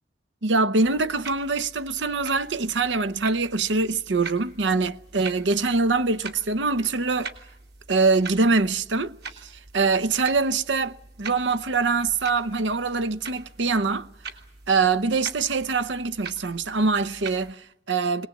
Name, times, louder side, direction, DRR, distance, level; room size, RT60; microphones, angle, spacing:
voice 1, 0.4-7.3 7.9-9.1 9.4-14.1 14.7-18.3, right 4 dB, 85° right, 0.9 m, -24 dB
sound 1, 0.8-17.5, right 5 dB, 65° right, 2.6 m, -43 dB
23.0 x 19.5 x 8.5 m
head